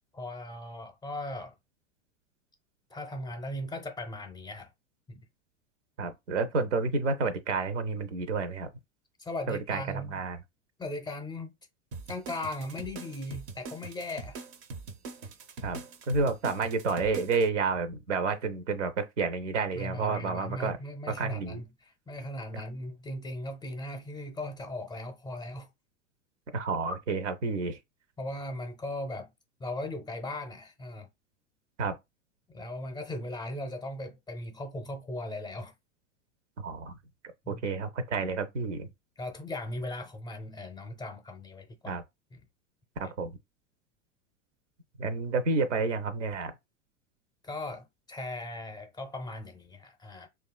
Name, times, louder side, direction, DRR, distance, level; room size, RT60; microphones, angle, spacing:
voice 1, 0.1-1.6 2.9-4.7 5.1-5.2 9.2-10.2 10.8-11.5 12.1-14.4 19.8-25.7 28.2-29.3 29.6-31.1 32.5-35.7 37.5-37.6 39.2-42.0 42.3-42.4 47.4-50.3, left 1 dB, 10° left, 0.5 m, -38 dB
voice 2, 6.0-8.7 9.5-10.4 15.6-15.8 16.1-20.8 21.1-21.6 22.5-22.6 26.5-27.8 31.8-31.9 36.6-37.0 37.5-38.9 41.9-42.0 43.0-43.3 45.0-46.5, right 4 dB, 80° right, 0.6 m, -30 dB
sound 1, 11.9-17.5, right 4 dB, 35° right, 0.5 m, -43 dB
2.8 x 2.3 x 2.2 m
hypercardioid pair, 90°, 36 cm